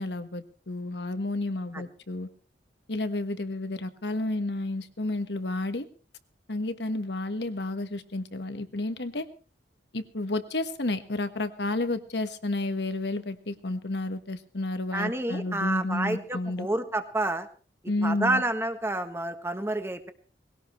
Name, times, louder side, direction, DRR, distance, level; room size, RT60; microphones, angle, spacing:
voice 1, 0.0-2.3 2.9-5.9 6.5-9.3 9.9-16.7 17.9-18.4, left 2 dB, 70° left, 10 dB, 1.4 m, -31 dB
voice 2, 14.9-17.5 18.0-20.1, right 2 dB, 15° right, 7 dB, 1.5 m, -29 dB
20.5 x 17.0 x 3.2 m, 0.38 s
head